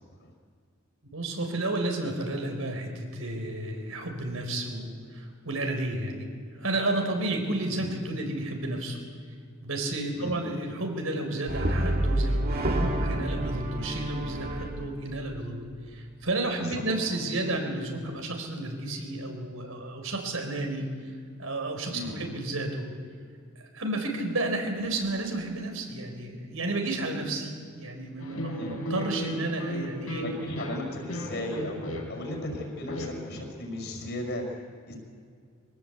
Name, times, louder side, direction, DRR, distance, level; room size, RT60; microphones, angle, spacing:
voice 1, 1.1-9.0 9.6-15.6 15.9-20.9 21.4-22.9 23.6-30.2, right 2 dB, 75° right, 3 dB, 4.6 m, -32 dB
Brass instrument, 11.5-15.7, right 1 dB, 50° right, 2.2 m, -29 dB
voice 2, 16.6-17.1 21.9-22.3 28.6-28.8 30.2-34.6 34.8-34.9, left 1 dB, 60° left, 0 dB, 5.6 m, -36 dB
sound 1, 28.2-33.4, equal, 85° left, 4.9 m, -35 dB
24.0 x 18.0 x 8.2 m, 2.2 s
head